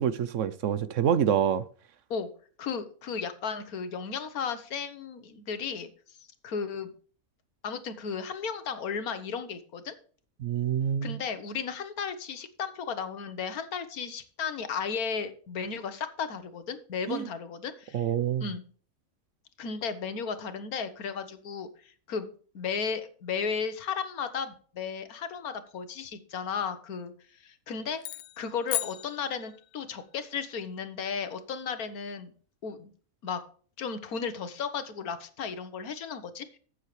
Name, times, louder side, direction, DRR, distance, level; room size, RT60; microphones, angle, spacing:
voice 1, 0.0-1.6 10.4-11.2 17.1-17.3 17.9-18.5, right 9 dB, 65° right, 0.9 m, -26 dB
voice 2, 2.6-6.2 6.4-6.9 7.6-9.9 11.0-18.1 18.4-18.6 19.6-27.1 27.4-28.0 28.4-32.3 32.6-32.9 33.2-33.4 33.8-36.6, left 6 dB, 85° left, 1.6 m, -34 dB
sound 1, 28.0-29.9, left 13 dB, 65° left, 0.9 m, -36 dB
12.5 x 8.3 x 3.2 m
omnidirectional pair, 1.5 m